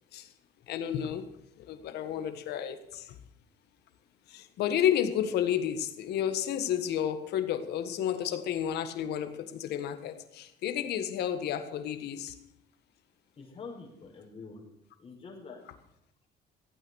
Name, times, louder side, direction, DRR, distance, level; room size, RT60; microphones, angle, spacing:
voice 1, 0.7-1.3 1.6-3.2 4.3-12.3, left 9 dB, 75° left, 9 dB, 1.7 m, -31 dB
voice 2, 13.4-14.6 15.0-15.6, left 4 dB, 35° left, -1 dB, 5.9 m, -45 dB
15.5 x 9.1 x 6.5 m, 0.80 s
cardioid pair, 110°, 17 cm